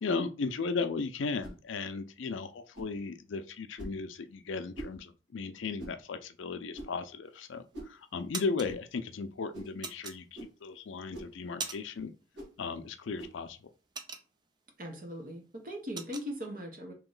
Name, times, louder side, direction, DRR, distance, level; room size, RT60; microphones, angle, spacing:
voice 1, 0.0-12.1 12.6-13.6, left 4 dB, 75° left, 0.5 m, -36 dB
sound 1, 1.4-1.6 2.7-3.0 3.8-4.0 4.7-5.0 5.8-6.0 6.7-7.0 7.7-8.0 8.6-8.8 9.5-9.8 10.3-10.6 11.1-11.4 12.3-12.6 13.2-13.4, right 1 dB, 70° right, 1.4 m, -44 dB
sound 2, 7.3-7.7 8.1-8.7 9.8-10.7 11.1-12.1 12.3-12.6 13.0-14.7 15.1-15.2 15.5-16.3, right 4 dB, 20° right, 0.3 m, -41 dB
voice 2, 14.8-16.9, equal, 45° right, 0.9 m, -39 dB
3.1 x 2.8 x 3.8 m
head